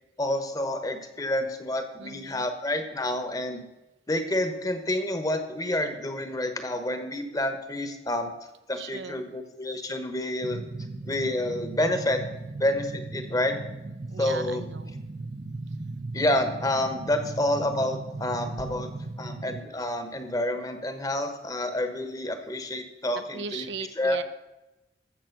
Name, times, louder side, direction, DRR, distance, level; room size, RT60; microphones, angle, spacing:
voice 1, 0.2-3.7 4.1-8.3 8.7-10.6 11.1-12.2 12.6-13.5 14.2-14.6 16.1-18.9 19.2-23.7 24.0-24.2, left 1 dB, 20° left, 8 dB, 1.1 m, -28 dB
voice 2, 2.0-2.5 8.7-9.3 14.1-14.9 23.3-24.2, right 5 dB, 75° right, 10 dB, 0.8 m, -38 dB
sound 1, 10.4-19.6, right 2 dB, 40° right, 0.7 m, -37 dB
13.5 x 7.4 x 6.0 m, 0.99 s
head